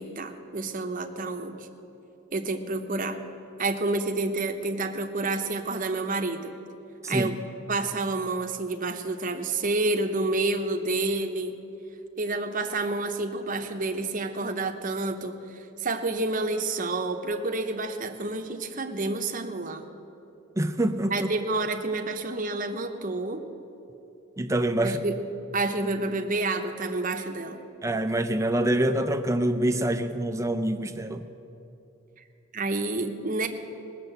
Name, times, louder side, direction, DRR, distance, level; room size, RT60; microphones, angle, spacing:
voice 1, 0.0-1.7 2.3-3.2 3.6-6.6 7.1-7.4 7.7-11.6 12.2-19.9 21.1-23.4 24.8-25.2 25.5-27.6 32.5-33.5, right 2 dB, 40° right, 5 dB, 0.8 m, -29 dB
voice 2, 20.6-21.3 24.4-25.0 27.8-31.2, right 1 dB, 15° right, 8 dB, 0.5 m, -25 dB
18.0 x 6.8 x 7.9 m, 2.9 s
head